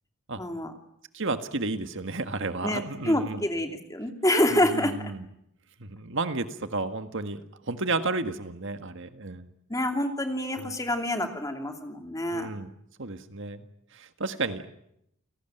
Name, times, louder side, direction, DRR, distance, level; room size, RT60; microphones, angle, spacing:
voice 1, 0.4-0.7 2.6-5.1 9.7-12.5, left 1 dB, 15° left, 5 dB, 2.8 m, -27 dB
voice 2, 1.1-3.5 4.5-5.3 5.8-9.5 10.6-10.7 12.3-12.7 13.0-13.7 13.9-14.7, right 3 dB, 60° right, 8 dB, 1.7 m, -32 dB
29.5 x 18.5 x 9.2 m, 0.77 s
head